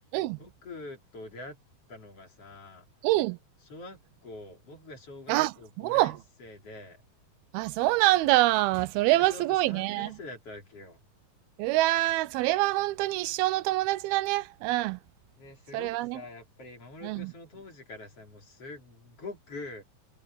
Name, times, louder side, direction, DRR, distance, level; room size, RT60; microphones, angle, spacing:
voice 1, 0.4-1.6 1.9-2.9 3.7-7.0 9.1-11.0 15.4-19.8, left 2 dB, 40° left, 4.5 m, -45 dB
voice 2, 3.0-3.4 5.3-6.2 7.5-10.2 11.6-15.0 15.7-16.2 17.0-17.3, right 18 dB, 85° right, 2.6 m, -25 dB
omnidirectional pair, 4.3 m